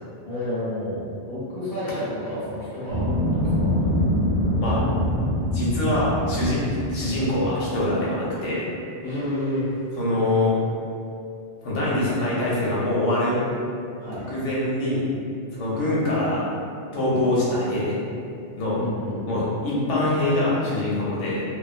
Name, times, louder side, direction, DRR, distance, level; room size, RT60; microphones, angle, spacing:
voice 1, 0.2-3.9 9.0-9.7 14.0-14.3 18.8-19.4, left 1 dB, 45° left, -12 dB, 1.0 m, -30 dB
sound 1, 2.9-7.9, equal, 55° right, 0.6 m, -24 dB
voice 2, 5.5-8.7 9.9-10.6 11.6-13.4 14.3-15.1 15.5-16.4 16.9-18.0 18.6-18.8 19.3-21.4, left 1 dB, 75° left, -7 dB, 1.0 m, -24 dB
2.3 x 2.3 x 2.4 m, 2.5 s
omnidirectional pair, 1.2 m